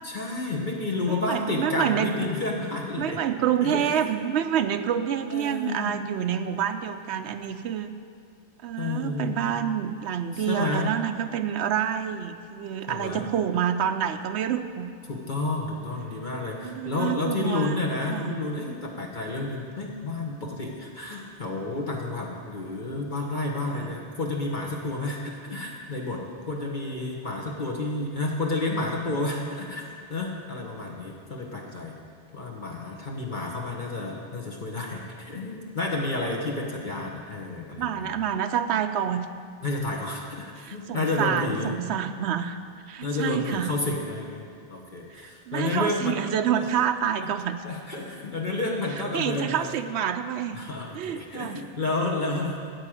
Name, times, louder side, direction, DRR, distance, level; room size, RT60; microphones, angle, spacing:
voice 1, 0.0-3.2 3.6-3.9 5.3-5.9 8.8-9.6 10.3-10.9 12.9-13.3 15.0-32.0 32.3-38.1 39.6-41.7 43.0-44.4 44.7-46.2 46.6-46.7 47.2-47.3 47.6-49.7 50.5-52.6, left 2 dB, 50° left, -1 dB, 1.4 m, -30 dB
voice 2, 1.1-2.3 3.0-7.9 8.6-14.9 16.6-17.8 18.1-18.3 23.7-23.9 37.8-39.3 40.6-42.6 42.9-43.7 45.1-47.6 49.1-50.6 50.9-51.6, right 9 dB, 90° right, 8 dB, 0.9 m, -28 dB
13.5 x 4.8 x 9.0 m, 2.3 s
omnidirectional pair, 1.1 m